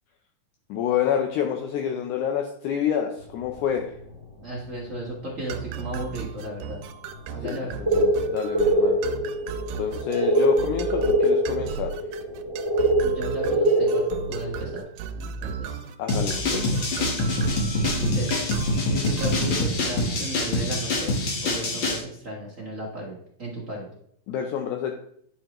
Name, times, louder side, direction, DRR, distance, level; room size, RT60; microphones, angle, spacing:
voice 1, 0.7-3.9 7.4-9.0 9.8-12.0 16.0-16.6 24.3-24.9, left 8 dB, 80° left, 3 dB, 2.0 m, -28 dB
sound 1, 3.2-4.2 4.6-4.9 5.4-5.7 6.1-6.2 6.3-6.5 7.0-14.8, right 1 dB, 15° left, 1.0 m, -24 dB
voice 2, 4.4-6.8 7.3-7.8 13.0-14.8 15.1-15.8 16.4-16.9 17.9-18.5 18.9-23.8, right 1 dB, 60° right, -4 dB, 0.8 m, -35 dB
sound 2, 5.5-19.6, right 7 dB, 85° right, 2.1 m, -36 dB
sound 3, 16.1-22.0, left 2 dB, 55° left, 1.4 m, -25 dB
10.0 x 5.5 x 3.0 m, 0.67 s
omnidirectional pair, 3.7 m